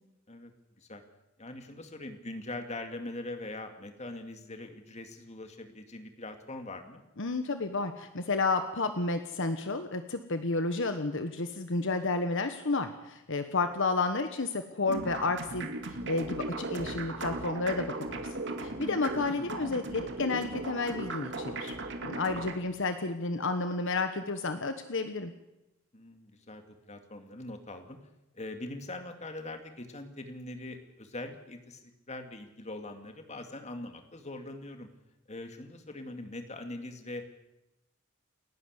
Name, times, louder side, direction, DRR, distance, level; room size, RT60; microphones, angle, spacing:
voice 1, 1.4-7.0 13.6-13.7 18.9-19.0 22.4-22.6 25.9-28.0 28.3-34.9 35.3-37.3, left 2 dB, 30° left, 6 dB, 2.3 m, -42 dB
voice 2, 7.2-17.9 18.1-18.3 18.6-21.7 22.0-25.3, left 3 dB, 60° left, 8 dB, 1.2 m, -31 dB
sound 1, 14.9-22.5, right 2 dB, 60° right, 2.2 m, -37 dB
29.0 x 11.0 x 8.2 m, 0.92 s
head